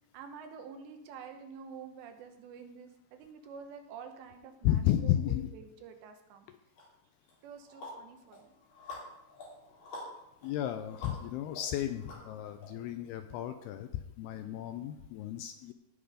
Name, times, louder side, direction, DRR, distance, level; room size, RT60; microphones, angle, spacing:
voice 1, 0.1-5.1 5.5-6.5 7.4-8.5, right 6 dB, 80° right, 5 dB, 3.3 m, -48 dB
voice 2, 4.6-5.5 6.5-6.6 10.4-15.7, left 12 dB, 80° left, 8 dB, 2.3 m, -33 dB
sound 1, 6.8-6.9 7.3-12.7, left 2 dB, 65° left, 5.7 m, -48 dB
17.5 x 5.9 x 5.0 m, 0.89 s
omnidirectional pair, 5.0 m